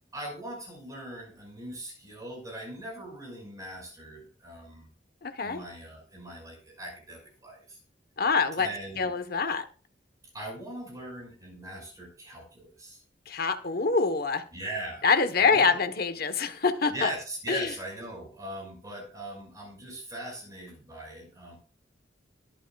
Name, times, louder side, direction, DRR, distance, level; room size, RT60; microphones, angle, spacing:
voice 1, 0.1-4.9 5.4-7.8 8.6-9.1 10.3-13.0 14.5-15.1 15.4-15.8 16.9-21.6, right 1 dB, 20° right, 0 dB, 6.1 m, -40 dB
voice 2, 5.2-5.6 8.2-8.7 9.0-9.6 13.3-14.4 15.0-17.1 17.5-17.7, left 5 dB, 55° left, 9 dB, 1.1 m, -25 dB
22.5 x 8.1 x 2.4 m, 0.37 s
head